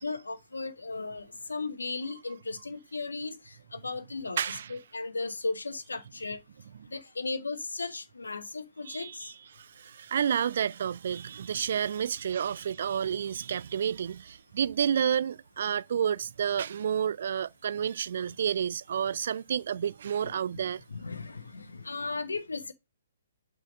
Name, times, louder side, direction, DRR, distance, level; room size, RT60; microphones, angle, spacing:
voice 1, 0.0-6.4 6.9-9.3 20.9-22.7, left 3 dB, 75° left, 1.1 m, -36 dB
voice 2, 4.4-4.7 8.9-20.8, right 8 dB, 50° right, 0.3 m, -30 dB
5.9 x 4.5 x 6.2 m
figure-of-eight pair, 130°, 0 cm